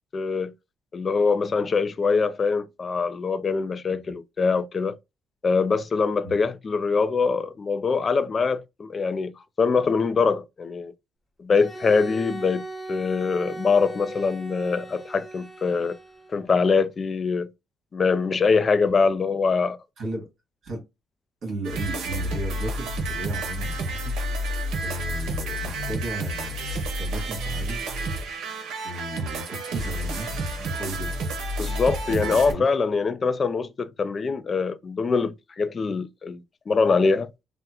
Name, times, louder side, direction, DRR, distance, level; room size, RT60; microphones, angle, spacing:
voice 1, 0.1-0.5 0.9-5.0 5.4-9.3 9.6-10.9 11.4-12.6 12.9-16.0 16.3-17.5 17.9-19.8 31.6-37.3, left 4 dB, 40° left, 0.4 m, -23 dB
Bowed string instrument, 11.5-16.5, right 2 dB, 5° left, 1.1 m, -39 dB
voice 2, 20.0-20.3 20.6-20.8 21.4-24.1 24.8-27.8 28.8-31.2 32.1-32.7, right 1 dB, 55° right, 1.8 m, -35 dB
sound 1, 21.6-32.5, right 1 dB, 85° right, 0.8 m, -30 dB
3.5 x 2.1 x 2.8 m
cardioid pair, 90°, 0 cm